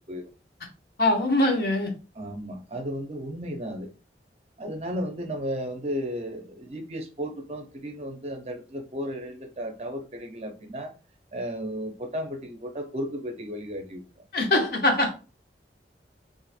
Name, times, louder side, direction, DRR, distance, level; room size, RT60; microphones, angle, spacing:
voice 1, 1.0-1.9 14.3-15.1, left 2 dB, 55° left, 2 dB, 0.9 m, -22 dB
voice 2, 2.1-3.9 4.6-10.9 11.3-14.2, equal, 35° right, 4 dB, 0.6 m, -34 dB
2.5 x 2.5 x 4.1 m, 0.34 s
head